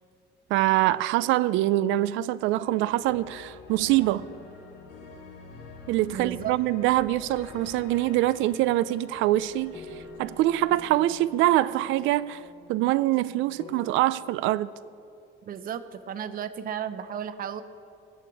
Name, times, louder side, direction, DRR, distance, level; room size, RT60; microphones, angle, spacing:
voice 1, 0.5-4.3 5.9-9.9 10.2-12.4 12.7-14.7, right 15 dB, 85° right, 0.4 m, -24 dB
sound 1, 2.5-12.5, left 4 dB, 60° left, 3.2 m, -47 dB
voice 2, 6.1-6.5 15.4-17.6, right 9 dB, 45° right, 0.7 m, -34 dB
sound 2, 8.8-14.0, left 4 dB, 30° left, 0.9 m, -49 dB
20.5 x 8.2 x 4.7 m
cardioid pair, 135°, 20 cm